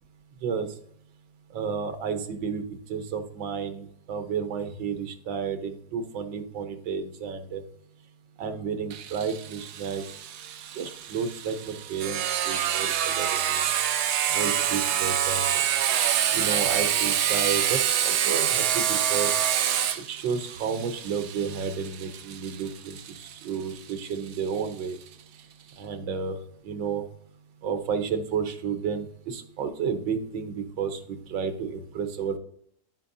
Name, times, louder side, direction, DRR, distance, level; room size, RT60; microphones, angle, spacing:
voice 1, 1.5-2.6 2.9-7.6 8.4-10.0 10.8-13.6 14.3-15.5 16.3-19.4 20.0-25.0 25.8-26.4 26.7-27.0 27.6-32.4, right 6 dB, 85° right, 7 dB, 1.7 m, -31 dB
Sawing, 8.9-24.3, right 9 dB, 70° right, 1.2 m, -27 dB
13.0 x 4.7 x 2.6 m, 0.67 s
omnidirectional pair, 2.0 m